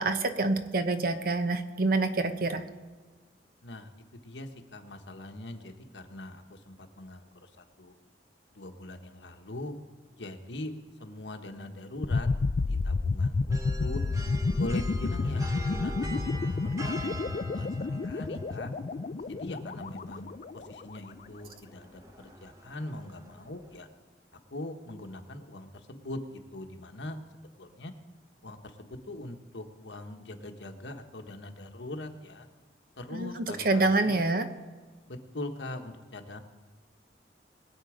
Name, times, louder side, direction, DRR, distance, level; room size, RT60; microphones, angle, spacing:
voice 1, 0.0-2.6 33.1-34.5, right 2 dB, 55° right, 9 dB, 0.9 m, -27 dB
voice 2, 3.6-7.9 8.5-9.7 10.2-10.7 11.0-12.3 12.6-14.0 14.6-16.3 16.6-18.7 19.3-23.9 24.5-27.2 27.6-27.9 28.4-32.5 33.0-34.2 35.1-36.4, left 1 dB, 80° left, 5 dB, 1.3 m, -41 dB
sound 1, 12.0-20.9, left 3 dB, 45° left, 0.4 m, -30 dB
sound 2, 13.5-23.8, right 1 dB, 20° right, 1.0 m, -45 dB
21.5 x 8.3 x 5.0 m, 1.4 s
head